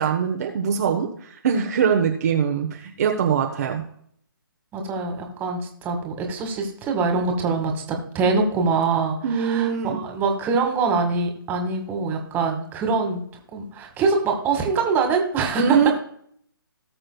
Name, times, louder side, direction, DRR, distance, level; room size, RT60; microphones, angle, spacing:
voice 1, 0.0-3.8 9.2-10.0 15.6-15.9, right 7 dB, 45° right, 2 dB, 1.2 m, -22 dB
voice 2, 4.7-13.2 13.5-15.9, right 4 dB, 15° right, 3 dB, 1.9 m, -24 dB
19.0 x 6.3 x 2.3 m, 0.64 s
figure-of-eight pair, 145°, 12 cm